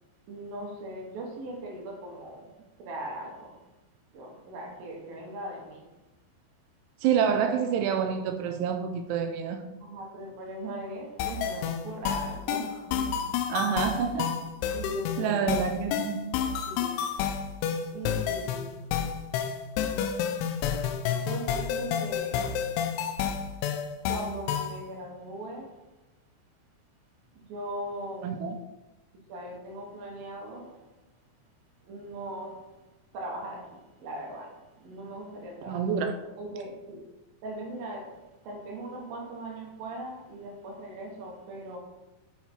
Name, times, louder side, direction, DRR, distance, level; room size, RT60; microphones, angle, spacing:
voice 1, 0.3-2.5 2.8-3.6 4.1-5.9 9.8-13.2 14.7-15.4 16.7-16.9 17.9-18.8 21.1-22.8 24.1-25.8 27.3-28.4 29.3-30.8 31.8-32.7 33.1-35.8 36.4-37.0 37.4-41.8, right 1 dB, 65° right, 0 dB, 2.6 m, -39 dB
voice 2, 7.0-9.6 13.5-14.3 15.2-16.2 28.2-28.6 35.7-36.2, right 7 dB, 85° right, 6 dB, 2.4 m, -27 dB
sound 1, 11.2-24.8, left 8 dB, 85° left, 3.0 m, -30 dB
7.3 x 5.7 x 4.5 m, 1.1 s
omnidirectional pair, 5.3 m